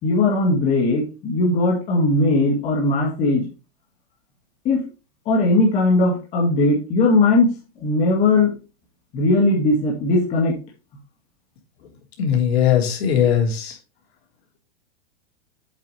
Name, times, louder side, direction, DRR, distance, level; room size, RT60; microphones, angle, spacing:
voice 1, 0.0-3.5 4.6-4.9 5.3-7.5 7.8-8.5 9.1-10.5, left 2 dB, 20° left, -3 dB, 2.1 m, -18 dB
voice 2, 12.2-13.8, left 9 dB, 65° left, 0 dB, 3.7 m, -19 dB
8.2 x 7.5 x 3.3 m, 0.32 s
supercardioid pair, 170°, 33 cm